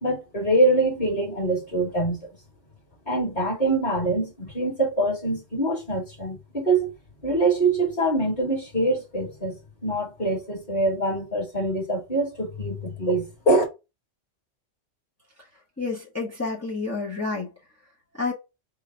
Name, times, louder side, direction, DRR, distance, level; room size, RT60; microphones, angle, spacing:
voice 1, 0.0-2.2 3.1-6.9 7.2-9.6 9.8-13.6, right 2 dB, 35° left, 2.3 m, -24 dB
voice 2, 15.8-17.5 18.2-18.3, left 3 dB, 15° left, 0.9 m, -29 dB
3.8 x 2.6 x 4.4 m
omnidirectional pair, 1.3 m